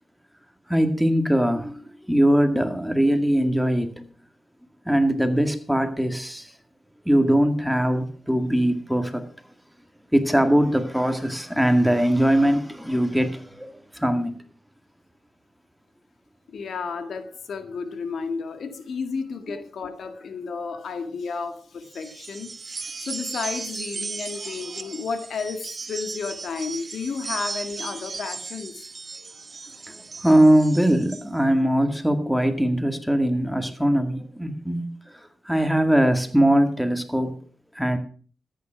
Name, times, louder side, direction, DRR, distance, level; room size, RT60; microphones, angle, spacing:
voice 1, 0.7-4.0 4.9-6.5 7.1-9.2 10.1-14.4 29.9-34.9 35.5-37.4 37.8-38.0, right 1 dB, ahead, 2.1 m, -21 dB
voice 2, 16.5-29.4, left 5 dB, 75° left, 1.7 m, -32 dB
sound 1, 21.9-31.3, right 4 dB, 45° right, 1.2 m, -36 dB
14.0 x 9.4 x 5.8 m
cardioid pair, 65°, 0 cm